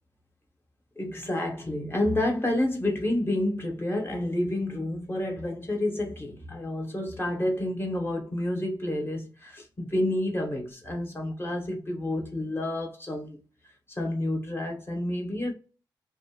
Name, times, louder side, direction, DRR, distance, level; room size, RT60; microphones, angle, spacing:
voice 1, 1.0-13.4 13.9-15.5, left 1 dB, 25° left, 1.2 m, -29 dB
2.5 x 2.4 x 2.8 m
cardioid pair, 65°, 8 cm